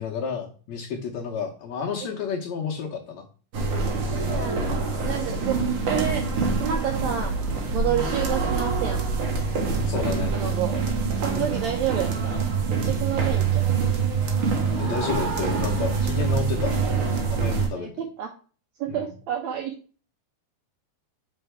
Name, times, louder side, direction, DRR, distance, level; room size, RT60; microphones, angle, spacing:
voice 1, 0.0-3.3 9.8-10.3 11.3-11.5 14.8-16.7 17.3-17.9 18.9-19.1, left 6 dB, 70° left, 0 dB, 1.8 m, -31 dB
sound 1, 3.5-17.7, right 4 dB, 60° right, 1.5 m, -25 dB
voice 2, 3.8-5.6 5.8-6.2 6.6-7.3 7.7-9.1 10.3-10.7 11.2-13.7 17.7-18.3 18.8-19.7, right 10 dB, 80° right, 4 dB, 1.6 m, -29 dB
6.6 x 4.5 x 3.3 m, 0.38 s
omnidirectional pair, 3.9 m